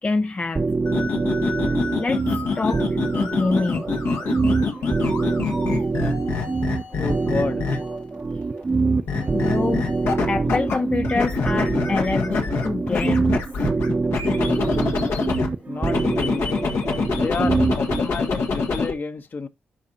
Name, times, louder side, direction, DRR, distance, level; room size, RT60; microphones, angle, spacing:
voice 1, 0.0-0.6 2.0-2.2 2.5-3.9 9.3-9.9 10.3-13.4, left 3 dB, 30° left, 0.4 m, -25 dB
sound 1, 0.6-18.0, right 3 dB, 35° right, 0.7 m, -25 dB
sound 2, 0.9-8.1 9.1-10.8 11.0-15.5 15.8-18.9, left 4 dB, 85° left, 1.7 m, -26 dB
voice 2, 7.0-7.6 15.7-16.5 17.1-19.5, left 4 dB, 50° left, 1.0 m, -30 dB
11.5 x 4.2 x 2.9 m
cardioid pair, 60°, 4 cm